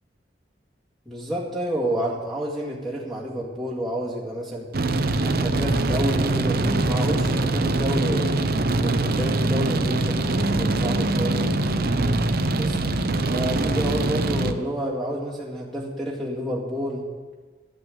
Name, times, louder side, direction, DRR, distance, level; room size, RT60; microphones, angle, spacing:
voice 1, 1.1-4.7 5.2-8.4 8.7-11.5 12.5-12.7 13.3-17.0, equal, ahead, -5 dB, 2.2 m, -29 dB
sound 1, 4.7-14.5, right 2 dB, 60° right, 0.8 m, -23 dB
13.5 x 6.2 x 9.1 m, 1.3 s
head